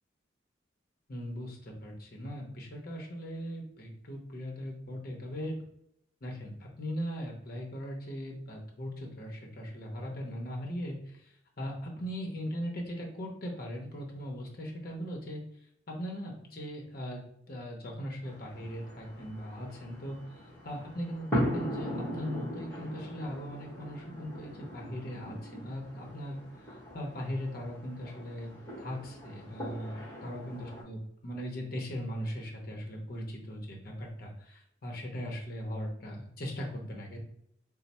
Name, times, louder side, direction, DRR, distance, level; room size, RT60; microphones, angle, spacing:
voice 1, 1.1-5.5 6.2-15.4 16.0-20.2 20.6-26.4 26.9-28.5 28.8-37.2, equal, 50° left, 0 dB, 0.7 m, -39 dB
sound 1, 18.2-30.8, equal, 15° left, 1.3 m, -39 dB
3.1 x 2.0 x 4.1 m, 0.75 s
head